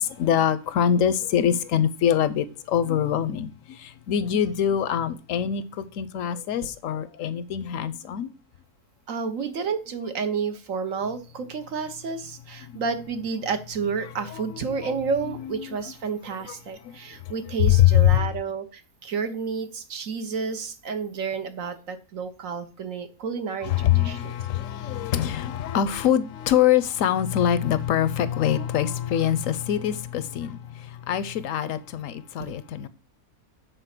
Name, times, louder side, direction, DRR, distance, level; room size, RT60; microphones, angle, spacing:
voice 1, 0.0-8.3 12.7-12.8 14.3-14.9 15.2-15.8 16.5-16.6 16.8-17.0 17.7-18.3 23.6-32.9, left 10 dB, 70° left, 0.9 m, -24 dB
voice 2, 9.1-24.3 32.4-32.5, right 5 dB, 65° right, 1.3 m, -30 dB
8.2 x 4.1 x 5.9 m
omnidirectional pair, 1.6 m